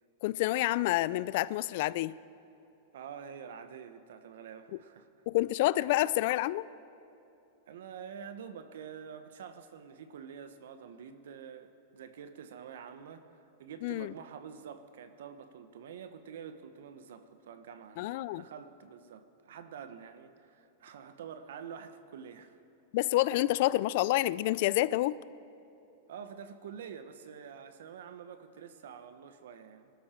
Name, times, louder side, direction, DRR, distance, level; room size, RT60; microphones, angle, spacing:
voice 1, 0.2-2.1 5.3-6.6 13.8-14.1 18.0-18.4 22.9-25.2, left 17 dB, 45° left, 19 dB, 0.3 m, -28 dB
voice 2, 2.9-5.1 5.8-5.9 7.7-22.6 26.1-29.9, right 7 dB, 70° right, 10 dB, 1.1 m, -47 dB
24.5 x 13.0 x 4.5 m, 2.9 s
supercardioid pair, 170°, 0 cm